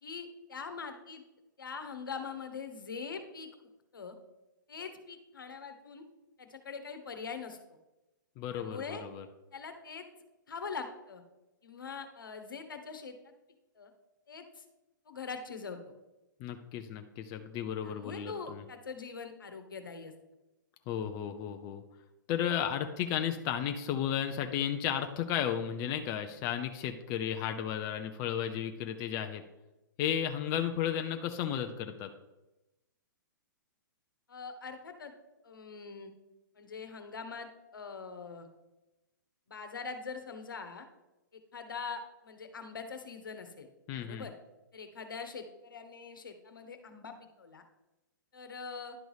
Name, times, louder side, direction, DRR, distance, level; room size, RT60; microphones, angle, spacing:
voice 1, 0.0-1.2 1.6-3.5 3.9-4.2 4.7-6.0 6.4-7.6 8.5-9.0 9.5-10.0 10.5-11.2 11.6-13.3 13.7-13.9 14.3-14.6 15.0-15.8 17.8-20.1 34.3-35.1 35.4-36.1 36.5-38.5 39.5-40.8 41.3-43.7 44.0-44.3 44.7-47.6 48.3-49.0, left 5 dB, 80° left, 7 dB, 1.2 m, -43 dB
voice 2, 8.4-9.2 16.4-18.6 20.9-21.8 22.3-29.4 30.0-32.1 43.9-44.3, left 9 dB, 30° left, 6 dB, 0.6 m, -34 dB
11.0 x 3.9 x 4.8 m, 1.0 s
hypercardioid pair, 120°, 11 cm